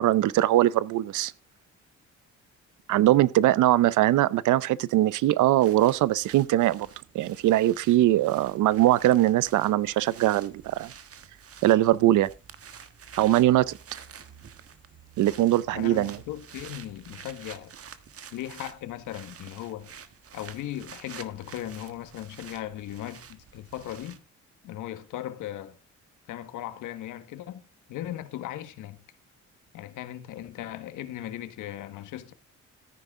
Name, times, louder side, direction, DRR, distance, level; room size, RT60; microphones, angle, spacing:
voice 1, 0.0-1.3 2.9-6.9 7.1-10.9 11.6-12.3 13.2-13.7 15.2-16.2, right 14 dB, 80° right, 0.7 m, -21 dB
sound 1, 5.6-24.2, right 7 dB, 50° right, 1.4 m, -49 dB
voice 2, 15.7-17.7 18.3-19.9 20.3-24.2 24.6-25.8 26.3-27.6 27.9-29.0 29.7-32.3, left 12 dB, 90° left, 1.5 m, -37 dB
14.0 x 10.0 x 3.7 m
cardioid pair, 90°, 30 cm